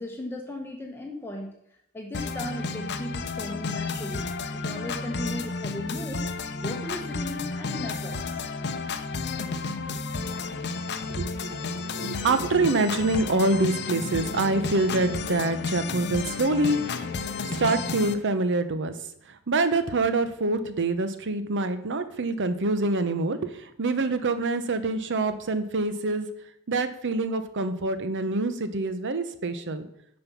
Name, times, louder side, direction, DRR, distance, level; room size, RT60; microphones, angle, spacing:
voice 1, 0.0-1.5 1.9-8.4, left 1 dB, 10° left, 1 dB, 1.0 m, -37 dB
sound 1, 2.1-18.1, left 4 dB, 50° left, 0.8 m, -32 dB
voice 2, 11.1-17.0 17.4-18.9 19.3-26.3 26.7-29.9, right 2 dB, 55° right, 11 dB, 0.9 m, -26 dB
9.5 x 5.4 x 6.0 m, 0.76 s
head